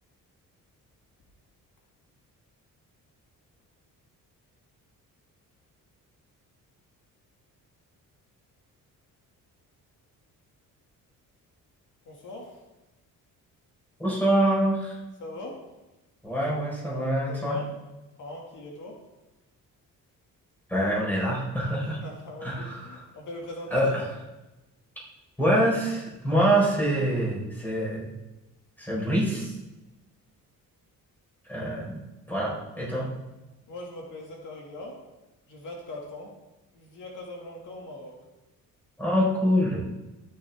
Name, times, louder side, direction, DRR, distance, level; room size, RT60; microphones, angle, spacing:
voice 1, 12.0-12.6 15.2-15.6 17.3-17.7 18.2-19.0 22.0-23.9 33.7-35.0 35.5-36.4 36.7-38.2, left 1 dB, 65° left, -2 dB, 2.2 m, -41 dB
voice 2, 14.0-15.0 16.2-17.6 20.7-22.0 22.4-22.7 23.7-24.0 25.4-28.1 28.8-29.5 31.5-32.0 32.3-33.1 39.0-39.8, right 1 dB, 5° left, -5 dB, 4.6 m, -25 dB
13.0 x 9.9 x 3.6 m, 1.0 s
cardioid pair, 150°, 34 cm